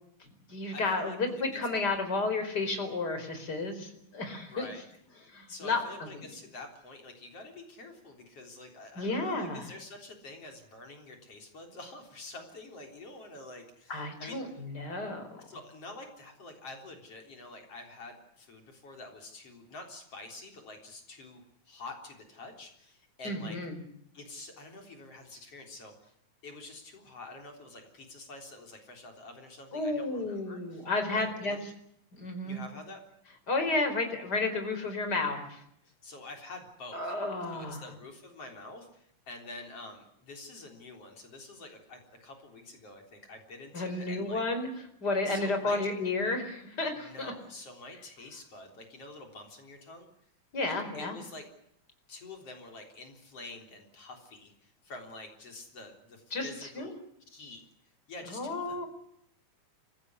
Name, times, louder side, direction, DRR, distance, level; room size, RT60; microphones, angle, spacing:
voice 1, 0.2-4.7 5.3-5.8 6.1-6.2 9.0-9.7 13.9-15.4 23.2-23.8 29.7-31.6 32.1-32.6 33.5-35.6 36.9-37.8 43.7-44.7 45.0-47.3 50.5-51.2 56.3-56.5 56.7-56.9 58.3-58.9, left 3 dB, 30° left, 7 dB, 4.9 m, -32 dB
voice 2, 0.7-1.6 4.5-4.8 5.5-14.6 15.5-23.6 24.1-26.1 26.4-31.6 32.4-33.0 35.8-37.1 37.5-44.4 45.2-45.8 46.9-50.1 50.6-51.4 52.1-57.0 57.3-57.6 58.1-58.8, left 2 dB, 50° left, 3 dB, 4.6 m, -47 dB
27.5 x 16.5 x 9.6 m, 0.72 s
omnidirectional pair, 3.6 m